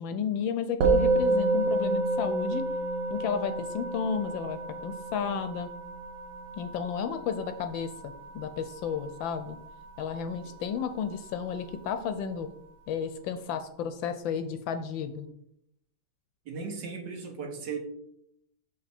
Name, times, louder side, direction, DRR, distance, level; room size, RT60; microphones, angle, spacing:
voice 1, 0.0-2.6 3.1-5.7 6.6-9.6 10.0-12.5 12.9-15.3, left 7 dB, 75° left, 9 dB, 1.2 m, -32 dB
Musical instrument, 0.8-10.3, right 3 dB, 90° right, 1.9 m, -30 dB
voice 2, 16.5-17.8, right 5 dB, 60° right, 3 dB, 1.5 m, -37 dB
6.6 x 5.2 x 4.2 m, 0.75 s
omnidirectional pair, 2.3 m